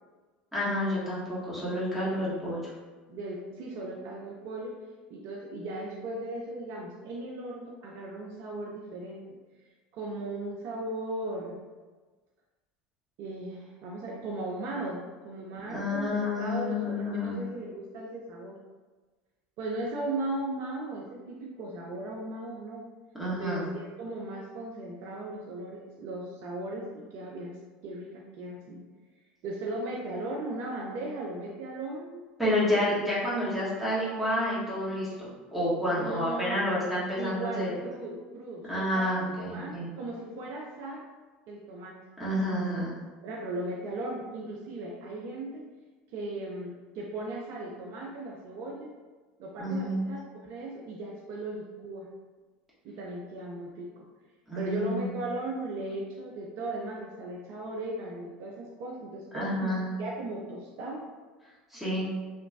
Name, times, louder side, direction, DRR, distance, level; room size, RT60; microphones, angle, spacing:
voice 1, 0.5-2.7 15.7-17.4 23.1-23.6 32.4-37.7 38.7-39.9 42.2-42.9 49.6-50.1 54.5-55.1 59.3-59.8 61.7-62.0, left 1 dB, ahead, -10 dB, 1.4 m, -29 dB
voice 2, 3.1-4.7 5.1-9.2 9.9-11.6 13.2-18.6 19.6-22.8 23.4-27.6 27.8-28.8 29.4-32.2 36.0-36.8 37.2-41.1 41.5-42.0 43.2-45.6 46.1-48.9 49.4-52.1 52.8-54.1 54.6-61.1, right 2 dB, 55° right, -2 dB, 0.4 m, -37 dB
2.9 x 2.1 x 2.5 m, 1.3 s
hypercardioid pair, 75°, 5 cm